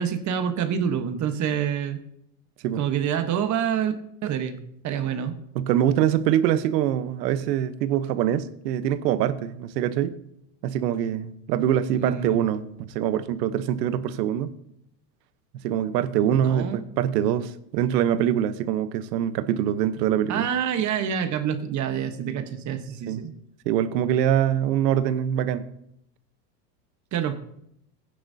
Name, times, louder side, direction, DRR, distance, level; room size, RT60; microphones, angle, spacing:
voice 1, 0.0-2.0 2.8-3.9 4.2-4.6 4.8-5.3 12.0-12.4 16.4-16.8 20.3-23.3 27.1-27.3, right 8 dB, 35° right, 8 dB, 1.2 m, -27 dB
voice 2, 5.5-10.1 10.6-14.5 15.6-20.5 23.1-23.2 23.7-25.6, right 10 dB, 80° right, 12 dB, 1.1 m, -24 dB
15.5 x 9.9 x 2.8 m, 0.74 s
supercardioid pair, 130°, 49 cm